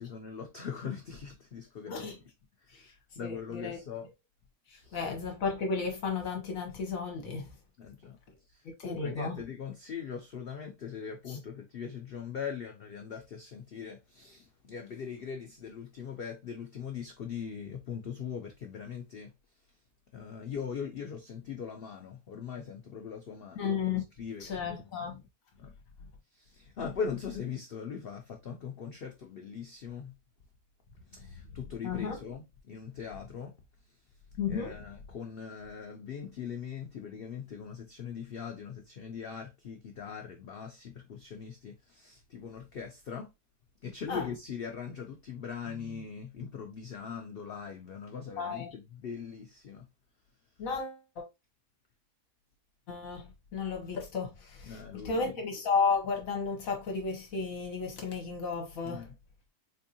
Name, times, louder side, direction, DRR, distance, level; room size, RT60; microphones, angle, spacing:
voice 1, 0.0-2.2 3.2-4.1 4.8-5.1 7.8-8.2 8.5-19.3 20.1-24.9 25.6-25.7 26.4-30.1 31.1-33.5 34.5-43.3 43.8-49.9 54.6-55.3 58.8-59.1, left 6 dB, 80° left, 0.5 m, -41 dB
voice 2, 3.2-3.8 4.9-7.4 8.8-9.4 23.5-24.0 24.4-25.2 31.8-32.2 34.4-34.7 44.1-44.3 48.4-48.7 50.6-51.2 52.9-59.1, left 5 dB, 65° left, 1.2 m, -33 dB
4.2 x 2.6 x 2.6 m
omnidirectional pair, 1.6 m